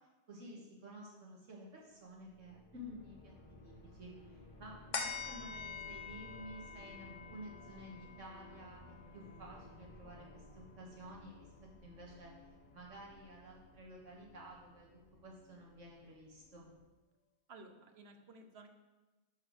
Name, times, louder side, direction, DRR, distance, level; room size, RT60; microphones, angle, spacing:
voice 1, 0.3-3.3 3.6-11.5 11.8-12.3 12.7-14.9 15.2-16.7, equal, 75° right, -3 dB, 2.0 m, -52 dB
sound 1, 1.9-16.9, left 1 dB, 45° left, 1.3 m, -58 dB
sound 2, 4.9-11.7 12.1-12.2, left 5 dB, 75° left, 1.2 m, -47 dB
voice 2, 17.5-18.7, right 3 dB, 55° right, 6 dB, 1.1 m, -56 dB
11.0 x 4.0 x 6.4 m, 1.2 s
omnidirectional pair, 1.3 m